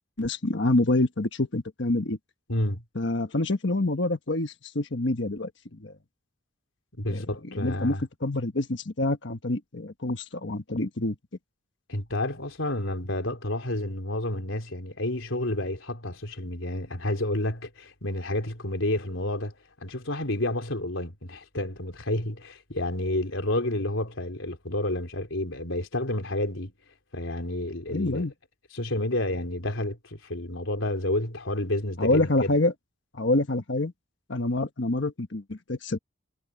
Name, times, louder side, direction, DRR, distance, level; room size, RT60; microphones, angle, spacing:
voice 1, 0.2-2.2 2.9-5.5 5.8-5.9 7.1-7.2 7.5-11.2 27.9-28.3 32.0-32.7 33.1-33.9 34.3-36.0, left 2 dB, 60° left, 1.3 m, -26 dB
voice 2, 2.5-2.8 7.0-8.0 11.9-19.5 19.8-26.7 27.1-28.2 28.7-32.5, left 1 dB, 80° left, 3.8 m, -30 dB
head